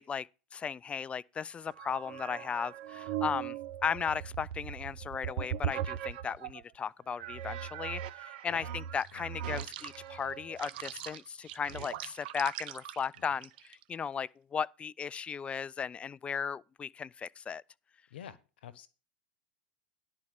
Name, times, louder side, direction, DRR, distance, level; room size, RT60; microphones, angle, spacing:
voice 1, 0.0-3.6 3.8-17.6, left 6 dB, 20° left, 0.4 m, -36 dB
sound 1, 1.7-6.6 7.2-13.8, right 10 dB, 70° right, 0.7 m, -40 dB
voice 2, 8.4-8.8 9.1-9.3 18.1-18.9, left 9 dB, 80° left, 1.0 m, -48 dB
11.0 x 4.3 x 8.0 m
hypercardioid pair, 100°, 5 cm